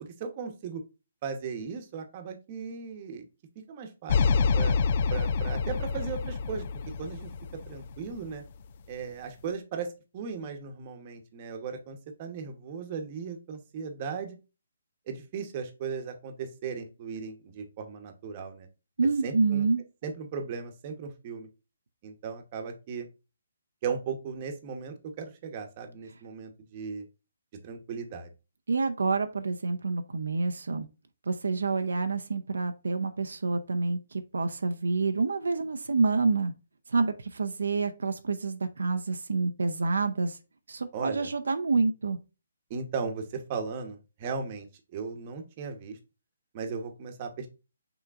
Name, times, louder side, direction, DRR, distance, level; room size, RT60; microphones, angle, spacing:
voice 1, 0.2-0.8 1.2-3.2 3.7-4.7 5.1-6.6 7.0-7.3 7.7-8.4 8.9-14.4 15.1-18.7 19.2-19.7 20.0-21.5 22.0-23.1 23.8-27.0 27.6-28.3 40.9-41.3 42.7-44.7 44.9-46.0 46.5-47.5, right 5 dB, 30° right, 0.9 m, -37 dB
sound 1, 4.1-8.4, left 5 dB, 40° left, 0.3 m, -27 dB
voice 2, 19.0-19.8 28.7-30.9 31.3-36.5 36.9-40.4 40.7-42.2, right 4 dB, 85° right, 0.6 m, -28 dB
6.0 x 3.6 x 2.4 m
hypercardioid pair, 160°, 0 cm